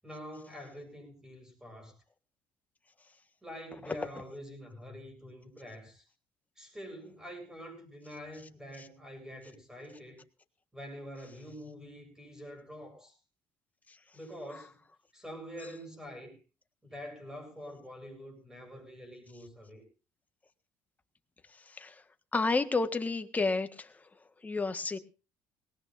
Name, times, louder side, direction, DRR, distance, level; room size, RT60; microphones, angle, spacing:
voice 1, 0.0-1.9 3.4-6.0 6.6-10.2 10.7-13.2 14.1-14.8 15.1-16.4 16.8-19.8, equal, 5° right, 6 dB, 7.8 m, -46 dB
voice 2, 22.3-23.9 24.4-25.0, left 3 dB, 20° left, 8 dB, 1.5 m, -30 dB
20.0 x 18.0 x 2.6 m, 0.34 s
cardioid pair, 100°, 8 cm